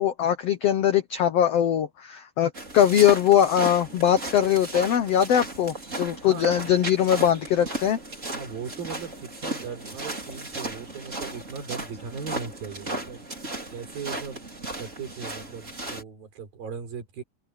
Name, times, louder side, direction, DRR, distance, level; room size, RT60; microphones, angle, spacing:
voice 1, 0.0-8.0, left 10 dB, 80° left, 1.4 m, -21 dB
sound 1, 2.5-16.0, right 2 dB, 20° right, 4.9 m, -35 dB
voice 2, 6.3-6.7 8.3-13.2 13.7-17.2, right 6 dB, 75° right, 5.9 m, -38 dB
omnidirectional pair, 4.2 m